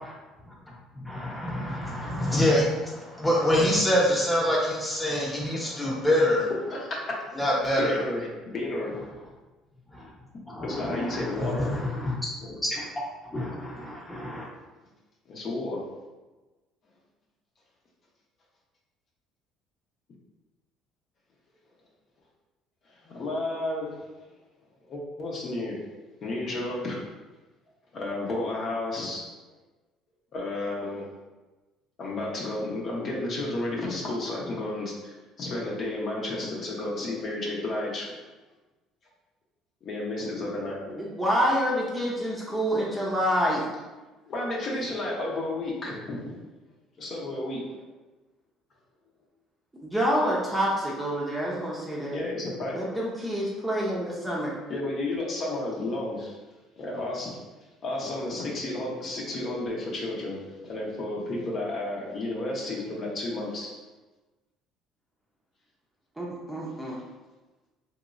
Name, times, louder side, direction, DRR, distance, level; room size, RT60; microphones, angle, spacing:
voice 1, 0.9-6.5 7.3-8.0 9.9-10.0 10.5-12.2 12.7-12.9 13.3-14.5, left 1 dB, 10° left, -4 dB, 1.0 m, -26 dB
voice 2, 7.8-8.3 8.5-9.1 10.6-11.7 12.4-12.5 15.3-15.9 23.0-24.1 24.9-25.8 26.2-27.0 27.9-29.3 30.3-31.1 32.0-38.1 39.8-41.0 44.3-46.3 47.0-47.8 52.1-52.7 54.7-56.4 56.8-57.4 57.8-60.4 60.6-63.7, left 2 dB, 50° left, -3 dB, 0.8 m, -32 dB
voice 3, 40.9-43.7 49.8-52.2 52.7-54.5 66.2-67.0, equal, 10° right, -5 dB, 0.7 m, -27 dB
3.0 x 2.9 x 2.5 m, 1.2 s
supercardioid pair, 100°, 0 cm